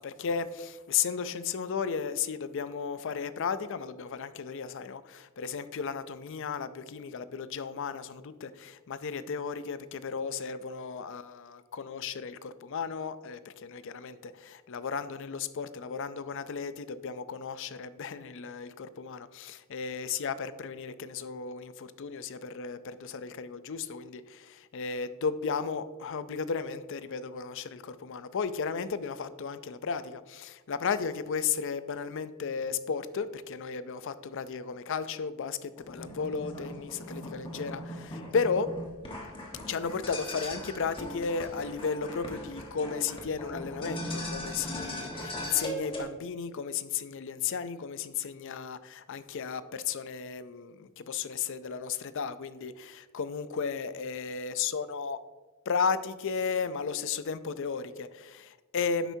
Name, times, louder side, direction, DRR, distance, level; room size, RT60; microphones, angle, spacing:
voice 1, 0.0-38.7 39.7-55.2 55.7-59.1, left 6 dB, 55° left, 14 dB, 0.4 m, -34 dB
sound 1, 35.8-46.0, left 1 dB, 25° left, 1.2 m, -39 dB
10.0 x 8.0 x 2.7 m, 1.2 s
head